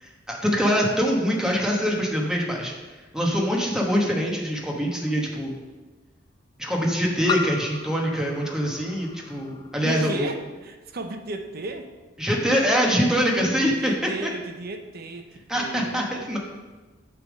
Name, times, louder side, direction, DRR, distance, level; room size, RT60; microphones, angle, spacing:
voice 1, 0.0-2.7 3.1-5.6 6.6-10.3 12.2-13.9 14.2-14.3 15.5-16.4, equal, 5° right, -1 dB, 1.1 m, -24 dB
Inside piano tap contact mic, 3.3-3.4 5.1-5.2 7.3-9.8, left 4 dB, 25° left, 0.4 m, -34 dB
voice 2, 9.8-11.9 13.8-16.2, right 2 dB, 50° right, 6 dB, 0.7 m, -35 dB
8.4 x 3.5 x 6.3 m, 1.3 s
head